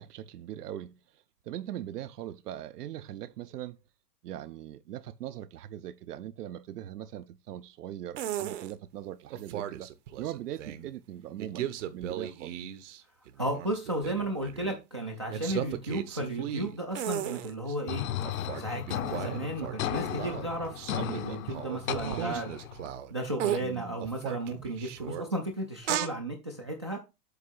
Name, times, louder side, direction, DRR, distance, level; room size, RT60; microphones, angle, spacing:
voice 1, 0.0-3.8 4.2-9.9 10.2-12.7 21.9-22.4 23.6-23.9, right 12 dB, 75° right, 0.7 m, -41 dB
sound 1, 8.1-8.7 9.3-10.9 11.4-13.0 13.3-14.8 15.3-17.7 18.2-23.1 23.4-23.6 24.0-25.2 25.8-26.1, right 11 dB, 50° right, 0.9 m, -36 dB
voice 2, 13.4-18.0 18.6-22.6 23.1-27.0, right 1 dB, 20° right, 0.3 m, -34 dB
sound 2, 17.9-22.9, left 11 dB, 60° left, 0.9 m, -35 dB
8.1 x 2.8 x 6.1 m
hypercardioid pair, 160°, 47 cm